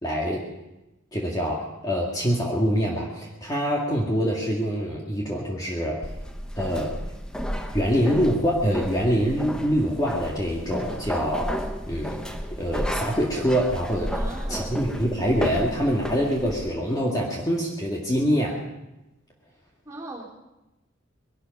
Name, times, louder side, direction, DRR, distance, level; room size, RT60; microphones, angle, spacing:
voice 1, 0.0-0.5 1.1-6.0 6.6-7.0 7.7-11.5 11.9-12.2 12.6-14.1 14.5-18.6, equal, 20° left, -3 dB, 2.0 m, -25 dB
sound 1, 6.0-16.7, equal, 5° left, 0.9 m, -33 dB
voice 2, 14.1-14.8 19.9-20.2, right 2 dB, 15° right, -4 dB, 3.8 m, -39 dB
21.5 x 12.0 x 5.4 m, 0.99 s
head